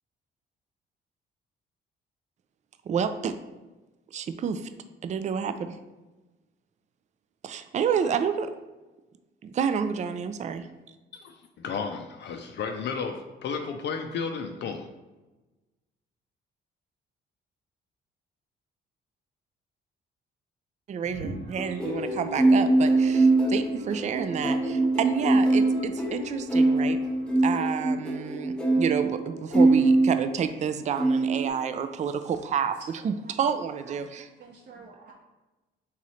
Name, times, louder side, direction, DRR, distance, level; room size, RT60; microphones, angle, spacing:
voice 1, 2.9-3.3 4.1-4.7 5.0-5.8 7.4-8.5 9.4-10.7 20.9-27.0 27.4-32.8 33.0-34.3, right 7 dB, 35° right, 10 dB, 0.4 m, -29 dB
voice 2, 11.1-14.9, left 5 dB, 60° left, 4 dB, 0.5 m, -33 dB
sound 1, 21.0-27.4, right 2 dB, 80° right, 1.2 m, -46 dB
sound 2, 21.6-30.6 31.0-31.5, right 2 dB, 5° left, 0.8 m, -23 dB
voice 3, 33.0-33.3 33.7-35.1, right 4 dB, 55° right, -3 dB, 0.7 m, -50 dB
3.7 x 3.0 x 4.1 m, 1.1 s
cardioid pair, 90°, 20 cm